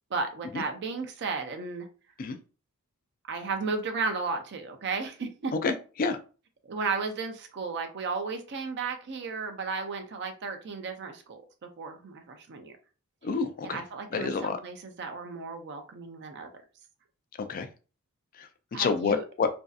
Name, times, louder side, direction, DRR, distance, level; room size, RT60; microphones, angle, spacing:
voice 1, 0.1-1.9 3.3-5.5 6.6-12.7 13.6-16.5 18.7-19.2, right 4 dB, 50° right, 0.5 m, -34 dB
voice 2, 5.6-6.2 13.2-13.8 14.1-14.6 17.4-17.7 18.4-19.5, left 5 dB, 40° left, 0.3 m, -29 dB
2.6 x 2.4 x 2.3 m
head